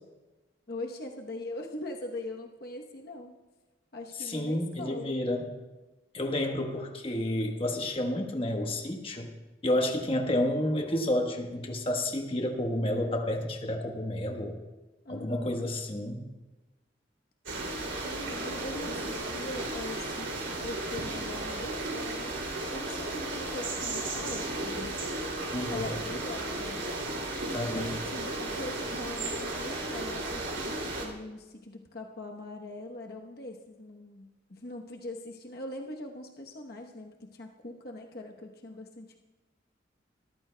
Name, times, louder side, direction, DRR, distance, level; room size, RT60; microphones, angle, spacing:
voice 1, 0.7-3.4 3.9-5.2 10.1-10.2 15.0-15.5 18.0-25.0 25.7-27.1 27.7-39.2, left 2 dB, 55° left, 1 dB, 1.0 m, -41 dB
voice 2, 4.2-5.5 6.1-9.3 9.6-14.6 15.1-16.3 25.5-25.9 27.5-27.9, left 1 dB, 30° left, 3 dB, 1.2 m, -30 dB
sound 1, 17.5-31.1, right 2 dB, 85° right, 2.8 m, -34 dB
23.5 x 14.0 x 2.2 m, 1.1 s
head